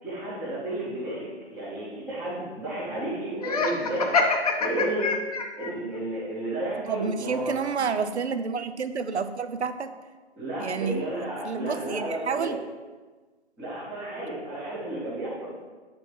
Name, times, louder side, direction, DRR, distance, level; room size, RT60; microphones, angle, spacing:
voice 1, 0.0-4.1 4.6-5.1 5.6-7.9 10.4-12.5 13.6-15.5, right 1 dB, 5° right, -11 dB, 0.8 m, -32 dB
Laughter, 3.4-5.7, left 4 dB, 35° left, 0.6 m, -25 dB
voice 2, 6.9-9.9 10.6-11.0 11.4-12.6, right 5 dB, 75° right, 11 dB, 0.7 m, -29 dB
8.7 x 4.3 x 4.7 m, 1.3 s
figure-of-eight pair, 145°, 34 cm